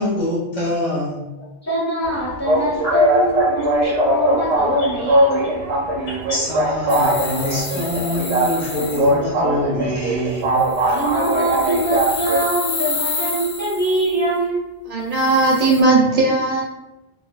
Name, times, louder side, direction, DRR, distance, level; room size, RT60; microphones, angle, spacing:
voice 1, 0.0-1.3 2.8-2.9 3.5-3.7 4.8-4.9 5.8-10.9, left 1 dB, 35° left, -6 dB, 1.1 m, -25 dB
voice 2, 1.6-5.5 10.9-14.8, right 1 dB, 15° left, -7 dB, 1.2 m, -23 dB
sound 1, 2.0-12.5, right 1 dB, 90° right, 0.9 m, -20 dB
sound 2, 6.9-9.1 10.6-14.1 15.1-15.8, left 4 dB, 75° left, 0.9 m, -30 dB
voice 3, 14.9-16.6, right 3 dB, 45° right, -3 dB, 0.6 m, -17 dB
4.3 x 2.4 x 2.3 m, 0.98 s
omnidirectional pair, 1.1 m